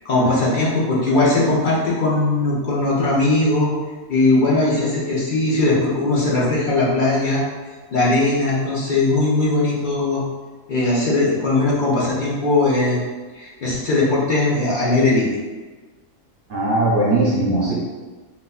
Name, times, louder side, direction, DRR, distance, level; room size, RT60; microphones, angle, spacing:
voice 1, 0.0-3.7 4.1-7.4 7.9-10.2 10.7-13.0 13.3-15.4, left 2 dB, 50° left, -6 dB, 0.6 m, -19 dB
voice 2, 16.5-17.7, right 2 dB, 50° right, -7 dB, 0.7 m, -19 dB
4.0 x 2.6 x 2.3 m, 1.3 s
omnidirectional pair, 1.5 m